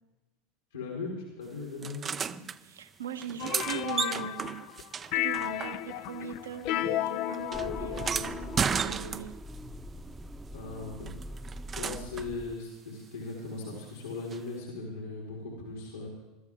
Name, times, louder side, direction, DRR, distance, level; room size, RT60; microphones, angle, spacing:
voice 1, 0.7-2.4 10.5-11.5 11.7-16.1, left 3 dB, 80° left, -2 dB, 3.9 m, -39 dB
sound 1, 1.8-2.6 3.2-6.2 6.4-9.6 11.1-12.3 14.3-14.4, right 7 dB, 25° right, 0.5 m, -34 dB
voice 2, 2.6-4.7 5.1-8.4 8.7-9.3, right 7 dB, 75° right, 6 dB, 1.4 m, -40 dB
sound 2, 3.4-4.8 5.1-8.8, left 14 dB, 50° left, 0.5 m, -33 dB
sound 3, 7.5-12.6, right 1 dB, ahead, 0.9 m, -42 dB
24.5 x 13.0 x 3.7 m, 1.1 s
figure-of-eight pair, 80°, 0 cm